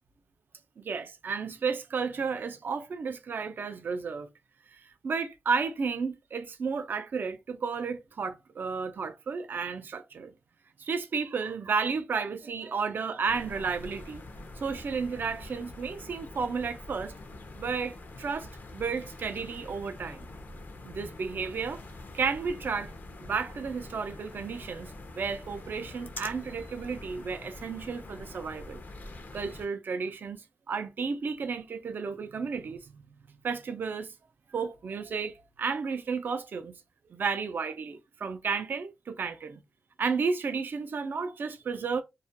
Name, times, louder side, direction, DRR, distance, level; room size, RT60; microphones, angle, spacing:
voice 1, 0.8-4.3 4.7-10.3 10.8-14.2 14.6-17.1 17.5-20.3 20.8-21.8 22.1-22.9 23.2-28.8 29.3-33.0 33.3-34.1 34.5-36.8 37.1-39.6 40.0-42.0, right 5 dB, 70° right, 0.4 m, -32 dB
sound 1, 13.3-29.7, left 2 dB, 65° left, 0.5 m, -45 dB
2.3 x 2.1 x 2.7 m
cardioid pair, 70°, 4 cm